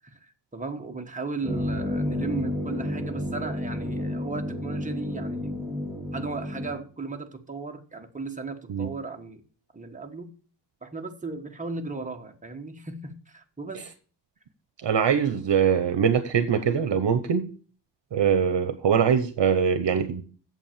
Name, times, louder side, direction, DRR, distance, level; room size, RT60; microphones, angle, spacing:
voice 1, 0.2-5.6 6.1-9.4 9.7-10.3 10.8-13.9, right 4 dB, 15° right, 3 dB, 1.4 m, -36 dB
sound 1, 1.4-6.7, left 1 dB, ahead, 3.7 m, -31 dB
voice 2, 14.8-17.5 18.1-20.2, right 7 dB, 75° right, 11 dB, 0.9 m, -23 dB
8.4 x 7.6 x 7.4 m, 0.41 s
wide cardioid pair, 130°, 43 cm